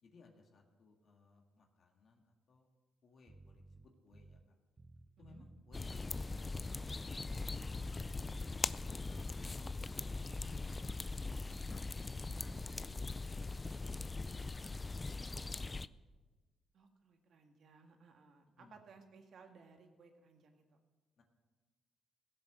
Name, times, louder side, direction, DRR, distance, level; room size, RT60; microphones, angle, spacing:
voice 1, 0.0-2.7 3.0-4.5 5.2-7.0 7.4-8.2 8.5-9.5 9.9-10.7 12.3-12.5 13.3-15.9 18.6-18.8 21.2-21.3, left 3 dB, 55° left, 2 dB, 1.8 m, -63 dB
Bass guitar, 3.3-4.5 4.8-6.9 7.2-9.3 9.6-11.7 12.0-12.8, right 2 dB, 25° right, 0.6 m, -58 dB
sound 1, 5.7-15.9, left 3 dB, 25° left, 0.3 m, -41 dB
voice 2, 12.5-13.2 16.7-20.8, right 5 dB, 65° right, 4 dB, 1.8 m, -61 dB
17.0 x 7.5 x 6.2 m, 1.3 s
cardioid pair, 90°, 0 cm